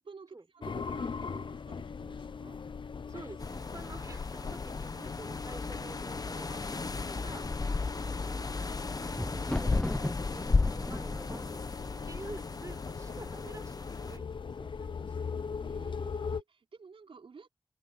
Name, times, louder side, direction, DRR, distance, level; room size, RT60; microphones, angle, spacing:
voice 1, 0.0-2.6 15.6-17.5, right 5 dB, 80° right, 4.3 m, -51 dB
sound 1, 0.6-16.4, left 5 dB, 65° left, 0.6 m, -40 dB
voice 2, 3.1-7.4 7.8-8.4 9.0-11.6 12.1-15.3, right 2 dB, 35° right, 6.6 m, -49 dB
sound 2, 3.4-14.2, left 3 dB, 45° left, 1.1 m, -35 dB
Thunder, 8.4-13.3 14.0-14.5 14.8-14.9, left 1 dB, 10° left, 0.6 m, -39 dB
open air
wide cardioid pair, 70°, 9 cm